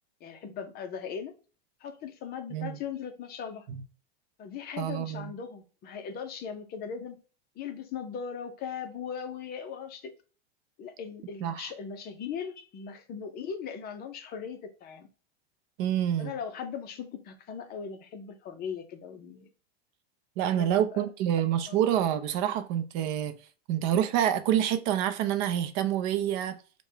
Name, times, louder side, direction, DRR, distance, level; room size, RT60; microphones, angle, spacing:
voice 1, 0.2-1.3 1.8-3.7 4.4-7.2 7.6-10.1 10.8-15.1 16.2-19.5 20.4-21.1 21.7-21.9, left 7 dB, 30° left, 0.6 m, -39 dB
voice 2, 4.8-5.3 11.4-11.6 15.8-16.3 20.4-23.3 23.7-26.6, right 10 dB, 50° right, 0.5 m, -27 dB
4.7 x 2.2 x 3.3 m
supercardioid pair, 130°, 32 cm